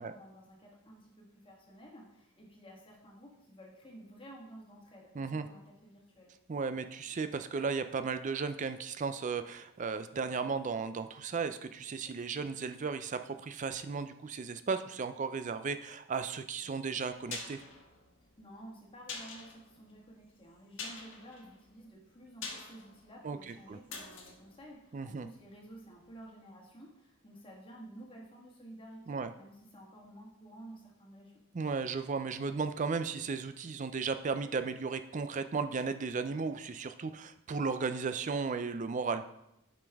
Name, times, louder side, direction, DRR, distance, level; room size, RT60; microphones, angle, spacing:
voice 1, 0.0-6.3 18.4-31.4, right 1 dB, 25° left, -1 dB, 1.4 m, -52 dB
voice 2, 5.2-5.5 6.5-17.6 23.2-23.8 24.9-25.3 29.1-29.3 31.5-39.2, right 5 dB, 35° right, 10 dB, 0.4 m, -35 dB
sound 1, 17.3-25.8 26.0-26.1, left 4 dB, 65° left, 1.3 m, -47 dB
8.5 x 5.2 x 3.5 m, 0.85 s
head